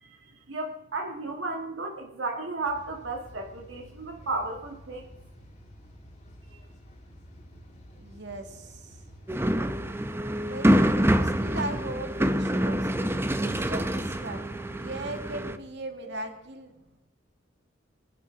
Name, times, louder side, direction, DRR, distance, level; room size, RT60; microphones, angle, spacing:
voice 1, 0.5-5.0, right 3 dB, 80° right, 1 dB, 1.8 m, -33 dB
sound 1, 2.6-15.5, equal, 40° left, 3.8 m, -50 dB
voice 2, 8.0-9.0 10.5-12.9 13.4-14.5 14.8-16.7, right 2 dB, 65° right, 4 dB, 2.2 m, -38 dB
sound 2, 9.3-15.6, equal, 15° right, 0.7 m, -26 dB
23.5 x 11.0 x 3.8 m, 0.96 s
head